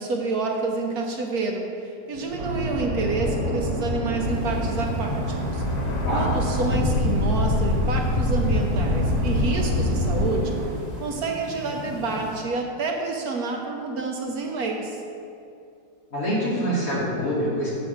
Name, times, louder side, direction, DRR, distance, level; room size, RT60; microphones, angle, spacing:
voice 1, 0.0-10.6 11.0-15.0, right 3 dB, 65° right, 1 dB, 1.2 m, -28 dB
sound 1, 2.2-10.3, left 2 dB, 75° left, 1.3 m, -26 dB
sound 2, 2.4-10.7, right 2 dB, 85° right, 2.0 m, -30 dB
sound 3, 4.2-12.4, equal, 25° left, 1.3 m, -38 dB
voice 2, 16.1-17.7, equal, 50° left, -8 dB, 3.0 m, -25 dB
7.5 x 6.3 x 5.7 m, 2.5 s
omnidirectional pair, 1.9 m